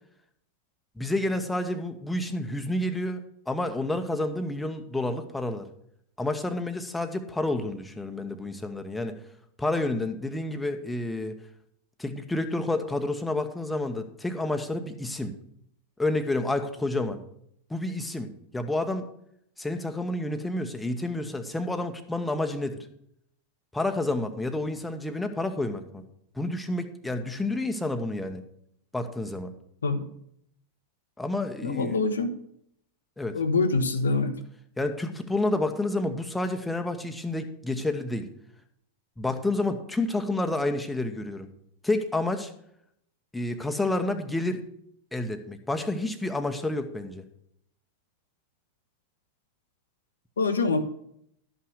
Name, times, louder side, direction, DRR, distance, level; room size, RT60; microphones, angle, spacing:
voice 1, 1.0-5.7 6.2-9.2 9.6-11.4 12.0-15.3 16.0-17.2 17.7-19.1 19.6-22.8 23.7-26.0 26.3-28.4 28.9-29.5 31.2-32.0 33.2-33.4 34.8-38.3 39.2-41.5 41.8-42.5 43.3-44.6 45.1-47.2, left 2 dB, 5° left, 6 dB, 1.0 m, -29 dB
voice 2, 31.6-32.3 33.3-34.4 50.4-50.9, left 3 dB, 70° left, 9 dB, 0.9 m, -25 dB
12.0 x 5.7 x 6.4 m, 0.71 s
figure-of-eight pair, 90°, 0 cm